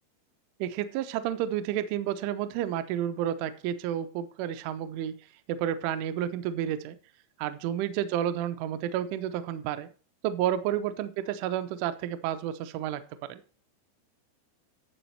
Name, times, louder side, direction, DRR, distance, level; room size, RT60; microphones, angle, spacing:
voice 1, 0.6-5.1 5.5-7.0 7.4-9.9 10.2-13.4, right 10 dB, 85° right, 11 dB, 3.0 m, -31 dB
12.5 x 7.1 x 4.5 m, 0.39 s
omnidirectional pair, 5.9 m